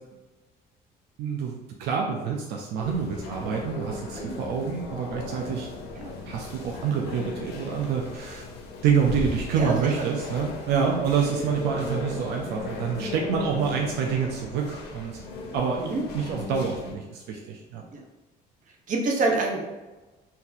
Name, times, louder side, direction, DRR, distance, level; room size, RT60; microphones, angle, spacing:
voice 1, 1.2-5.7 6.3-8.5 8.8-15.2 15.5-17.9, right 6 dB, 80° right, 0 dB, 0.5 m, -27 dB
sound 1, 2.8-16.9, left 3 dB, 75° left, 0.7 m, -37 dB
voice 2, 9.6-10.1 15.8-16.0 17.9-18.0 18.9-19.6, right 3 dB, 50° right, 1 dB, 0.8 m, -27 dB
2.7 x 2.7 x 3.8 m, 1.2 s
cardioid pair, 110°, 17 cm